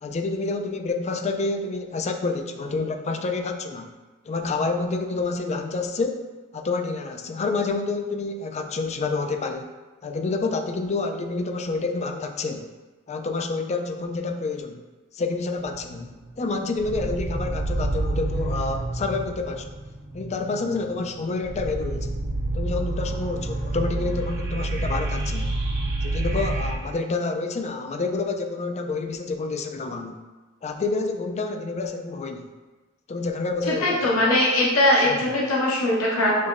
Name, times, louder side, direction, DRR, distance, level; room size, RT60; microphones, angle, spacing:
voice 1, 0.0-3.9 4.3-6.2 6.5-9.7 10.0-12.7 13.1-14.8 15.1-19.7 20.1-22.1 22.5-25.5 26.0-30.2 30.6-32.5 33.1-34.2 35.1-35.2, left 3 dB, 30° left, 5 dB, 0.4 m, -28 dB
sound 1, 15.6-16.4 16.8-26.8, right 2 dB, 55° right, 1.0 m, -29 dB
voice 2, 33.7-36.5, left 1 dB, 70° left, -4 dB, 0.8 m, -21 dB
6.5 x 3.0 x 2.5 m, 1.3 s
head